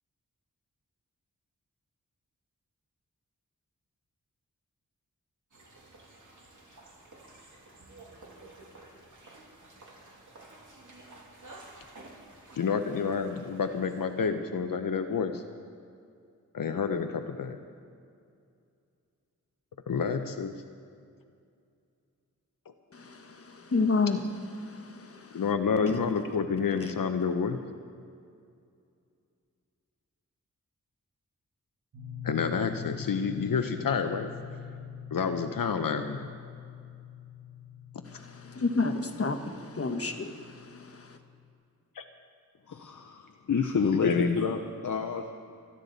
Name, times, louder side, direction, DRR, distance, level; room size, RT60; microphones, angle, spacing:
sound 1, 5.5-14.3, right 2 dB, 65° right, 2.9 m, -52 dB
voice 1, 12.6-15.4 16.5-17.6 19.9-20.5 25.3-27.6 32.2-34.3 35.1-36.3 42.0-42.1 44.0-44.4, left 6 dB, 85° left, 7 dB, 0.8 m, -29 dB
voice 2, 22.9-25.4 25.9-26.1 26.7-26.9 38.0-41.2, left 3 dB, 45° left, 6 dB, 1.3 m, -31 dB
sound 2, 31.9-41.5, left 7 dB, 85° right, 1.6 m, -44 dB
voice 3, 42.7-45.3, left 5 dB, 65° left, 4 dB, 0.9 m, -29 dB
26.5 x 11.0 x 4.1 m, 2.4 s
wide cardioid pair, 90°, 33 cm